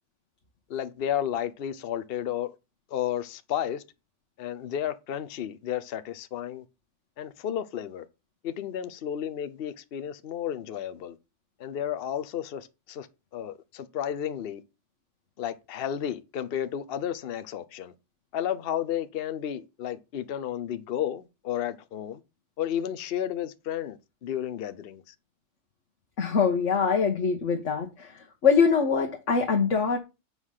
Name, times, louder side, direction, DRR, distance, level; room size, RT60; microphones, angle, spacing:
voice 1, 0.7-2.6 2.9-3.8 4.4-6.6 7.2-8.0 8.4-11.2 11.6-13.1 13.3-14.6 15.4-17.9 18.3-22.2 22.6-25.0, left 10 dB, 60° left, 0.8 m, -32 dB
voice 2, 26.2-30.0, left 5 dB, 90° left, 1.5 m, -24 dB
8.0 x 4.9 x 5.6 m
omnidirectional pair, 1.2 m